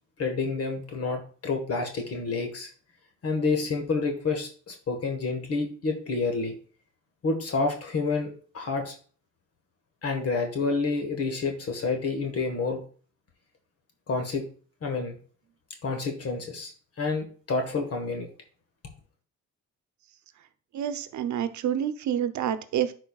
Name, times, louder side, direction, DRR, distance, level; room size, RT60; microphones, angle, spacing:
voice 1, 0.2-2.7 3.2-6.5 7.2-8.9 10.0-12.8 14.1-14.4 14.8-15.2 15.8-16.7 17.0-18.3, left 4 dB, 50° left, 3 dB, 1.4 m, -29 dB
voice 2, 20.7-22.9, right 9 dB, 70° right, 11 dB, 0.8 m, -28 dB
11.0 x 4.5 x 2.4 m, 0.41 s
cardioid pair, 90°, 30 cm